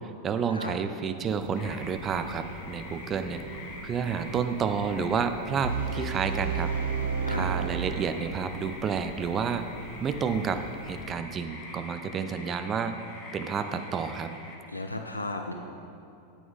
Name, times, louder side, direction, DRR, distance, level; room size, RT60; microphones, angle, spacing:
voice 1, 0.2-3.4 3.8-6.7 7.3-9.7 10.0-13.0 13.3-14.3, right 6 dB, 25° right, 9 dB, 0.5 m, -30 dB
sound 1, 1.2-11.0, right 1 dB, 75° right, 2.1 m, -44 dB
sound 2, 1.6-14.6, left 2 dB, 40° left, 1.2 m, -45 dB
sound 3, 5.6-8.7, right 6 dB, 60° right, 0.7 m, -31 dB
voice 2, 7.3-7.6 14.7-15.5, left 2 dB, 85° left, 3 dB, 0.5 m, -34 dB
8.9 x 8.5 x 3.6 m, 2.6 s
figure-of-eight pair, 90°, 0 cm